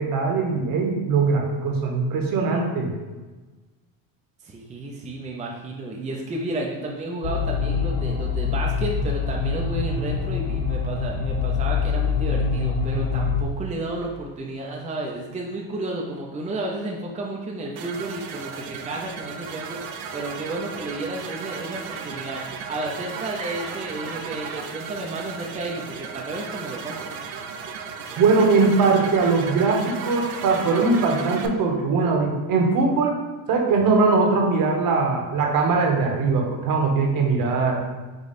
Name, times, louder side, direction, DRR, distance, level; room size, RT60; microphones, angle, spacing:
voice 1, 0.0-2.9 28.2-33.2 33.5-37.8, right 4 dB, 55° right, 1 dB, 1.1 m, -21 dB
voice 2, 4.4-19.8 20.1-27.1, right 2 dB, 15° right, -1 dB, 0.5 m, -32 dB
sound 1, 7.2-13.4, left 5 dB, 45° left, 0.6 m, -25 dB
sound 2, 17.8-31.5, right 6 dB, 70° right, 0.6 m, -35 dB
5.0 x 2.3 x 4.2 m, 1.2 s
cardioid pair, 115°, 41 cm